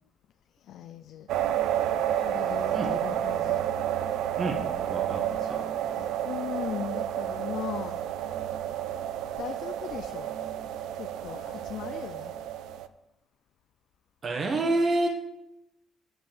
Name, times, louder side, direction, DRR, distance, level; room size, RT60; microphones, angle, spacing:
voice 1, 0.6-1.3 2.2-3.7 5.2-8.0 9.4-10.3 10.9-12.3, left 9 dB, 80° left, 8 dB, 0.4 m, -39 dB
sound 1, 1.3-12.9, right 11 dB, 90° right, 0.5 m, -30 dB
voice 2, 4.4-5.6 14.2-15.1, right 2 dB, 50° right, 2 dB, 1.5 m, -28 dB
8.2 x 7.6 x 7.2 m, 0.89 s
cardioid pair, 90°, 0 cm